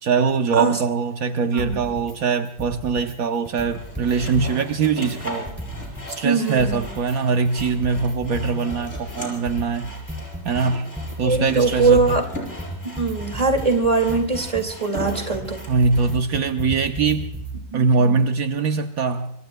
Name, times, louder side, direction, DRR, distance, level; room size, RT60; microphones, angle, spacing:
voice 1, 0.0-5.5 6.1-9.9 10.4-10.9 11.2-12.2 15.7-17.3 17.7-19.3, right 5 dB, 75° right, 6 dB, 1.3 m, -22 dB
voice 2, 1.5-1.9 6.2-6.9 11.2-12.3 13.0-15.6, right 4 dB, 25° right, 5 dB, 2.1 m, -22 dB
sound 1, 1.6-2.2 2.5-3.2 3.5-6.2 6.5-17.6, equal, 5° right, 2.7 m, -34 dB
Sawing, 3.7-16.2, equal, 50° left, 5.2 m, -38 dB
26.5 x 23.5 x 2.2 m, 0.76 s
omnidirectional pair, 1.5 m